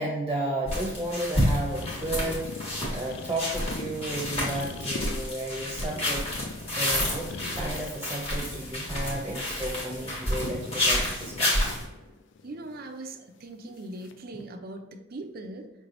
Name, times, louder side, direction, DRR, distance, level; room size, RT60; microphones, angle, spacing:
voice 1, 0.0-2.5 2.9-6.3 6.8-11.7 14.3-14.4, right 1 dB, 10° right, -3 dB, 0.8 m, -33 dB
sound 1, 0.6-11.8, left 1 dB, 25° left, 1.3 m, -30 dB
sound 2, 1.7-8.0 8.4-9.4 9.7-13.2 14.0-14.3, left 4 dB, 55° left, 0.3 m, -41 dB
voice 2, 12.4-15.7, right 2 dB, 45° right, 4 dB, 0.5 m, -40 dB
5.2 x 3.3 x 2.6 m, 1.0 s
head